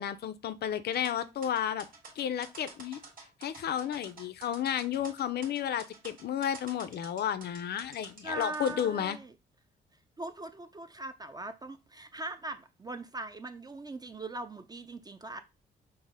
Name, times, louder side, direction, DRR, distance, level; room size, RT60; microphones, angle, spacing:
voice 1, 0.0-1.8 2.2-3.0 3.4-9.2, left 9 dB, 55° left, 0.5 m, -32 dB
sound 1, 0.9-8.9, right 4 dB, 45° right, 1.4 m, -50 dB
voice 2, 8.2-9.3 10.2-15.4, right 2 dB, 20° right, 0.3 m, -40 dB
5.4 x 2.0 x 3.5 m
cardioid pair, 90°, 20 cm